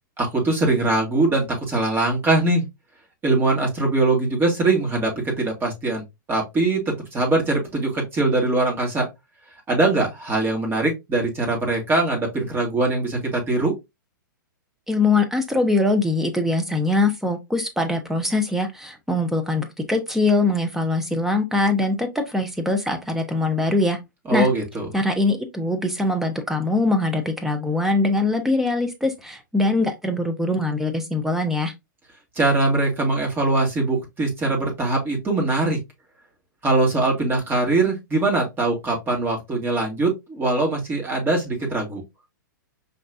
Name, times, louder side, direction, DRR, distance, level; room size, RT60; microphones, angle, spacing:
voice 1, 0.2-2.6 3.2-9.1 9.7-13.7 24.3-24.9 32.4-35.8 36.6-42.0, right 2 dB, 20° right, 2.0 m, -22 dB
voice 2, 14.9-24.0 24.3-24.5 24.9-31.7, left 2 dB, 5° right, 1.0 m, -22 dB
5.2 x 3.3 x 2.6 m
hypercardioid pair, 115°, 11 cm